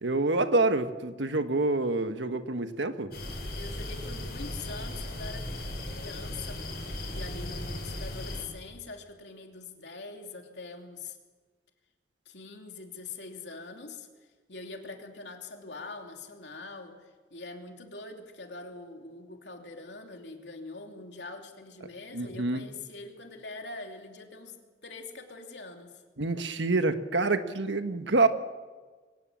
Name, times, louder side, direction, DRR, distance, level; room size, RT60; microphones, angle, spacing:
voice 1, 0.0-3.1 22.1-22.6 26.2-28.3, right 2 dB, 85° right, 9 dB, 1.4 m, -27 dB
sound 1, 3.1-8.4, left 1 dB, 55° left, 5.5 m, -37 dB
voice 2, 3.5-5.5 5.9-6.8 7.0-11.2 12.2-14.1 14.5-26.0, left 3 dB, 75° left, 3 dB, 3.0 m, -43 dB
24.0 x 18.0 x 7.5 m, 1.4 s
head